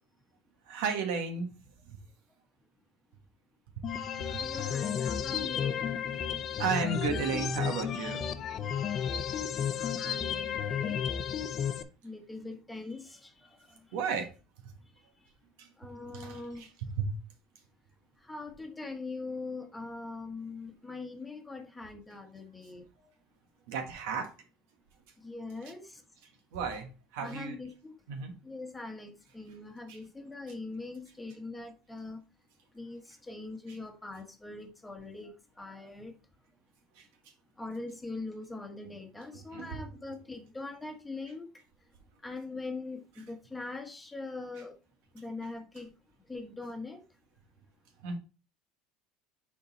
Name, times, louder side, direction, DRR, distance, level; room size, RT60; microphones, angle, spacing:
voice 1, 0.7-1.5 1.8-2.0 3.8-4.9 5.4-5.5 6.1-8.3 13.9-14.3 14.6-14.7 15.6-15.7 16.1-17.1 23.7-24.3 26.5-27.6 28.1-28.3 29.9-30.0 36.9-37.1 39.3-39.9 48.0-48.2, right 5 dB, 80° right, 1.4 m, -34 dB
sound 1, 3.8-11.8, left 8 dB, 45° left, 0.6 m, -33 dB
voice 2, 4.4-5.9 9.6-11.0 12.0-13.3 15.8-16.7 18.3-22.9 25.2-26.0 27.2-27.9 28.4-32.2 32.7-36.2 37.6-41.5 42.2-44.8 45.1-45.9 46.3-47.0, left 3 dB, 10° left, 1.2 m, -42 dB
6.6 x 3.9 x 4.1 m
supercardioid pair, 115°, 0 cm